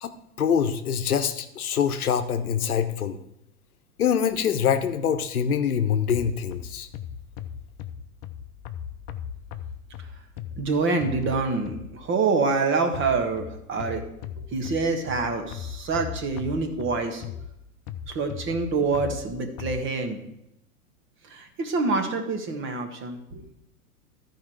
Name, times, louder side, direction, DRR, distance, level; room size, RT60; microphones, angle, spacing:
voice 1, 0.0-3.2 4.0-6.9, left 8 dB, 70° left, 9 dB, 0.9 m, -25 dB
sound 1, 6.1-12.1 12.9-19.8, left 9 dB, 40° left, 0.7 m, -39 dB
voice 2, 10.6-14.0 14.5-17.2 18.1-20.2 21.3-23.5, right 4 dB, 25° right, 5 dB, 1.4 m, -26 dB
13.5 x 4.8 x 4.6 m, 0.82 s
figure-of-eight pair, 95°, 45 cm